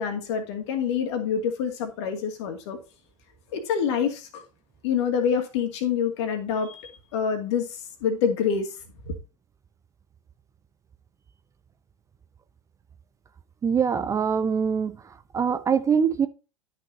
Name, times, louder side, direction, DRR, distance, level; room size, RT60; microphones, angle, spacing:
voice 1, 0.0-2.8 3.5-4.4 4.8-8.7 9.0-9.2, left 7 dB, 55° left, 2.2 m, -26 dB
voice 2, 13.6-15.0 15.3-16.3, right 6 dB, 15° right, 0.6 m, -23 dB
12.0 x 6.0 x 2.7 m
figure-of-eight pair, 85°, 18 cm